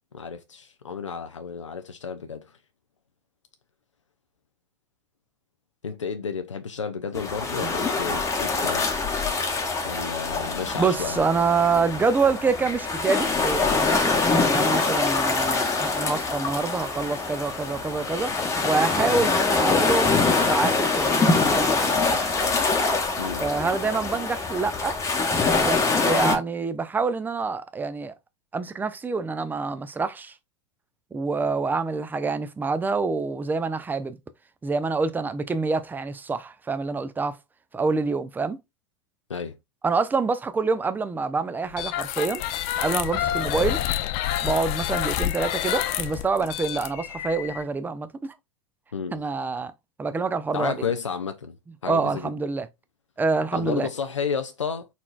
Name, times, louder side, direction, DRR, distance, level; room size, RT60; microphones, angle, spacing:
voice 1, 0.1-2.5 5.8-8.9 9.8-11.2 23.2-23.4 39.3-39.6 48.9-49.2 50.5-51.6 51.8-52.3 53.5-54.9, left 6 dB, 90° left, 0.5 m, -32 dB
sound 1, 7.1-26.4, left 4 dB, 20° left, 1.1 m, -24 dB
voice 2, 10.8-18.3 18.6-22.0 23.4-24.9 25.5-28.1 28.5-30.3 31.1-34.2 34.6-37.4 37.7-38.6 39.8-42.4 42.8-43.8 44.4-48.3 49.1-49.7 50.0-50.8 51.9-52.7 53.2-53.9, right 4 dB, 10° right, 0.6 m, -26 dB
sound 2, 41.7-47.6, left 12 dB, 45° left, 0.6 m, -28 dB
4.4 x 4.1 x 2.4 m
figure-of-eight pair, 90°, 15 cm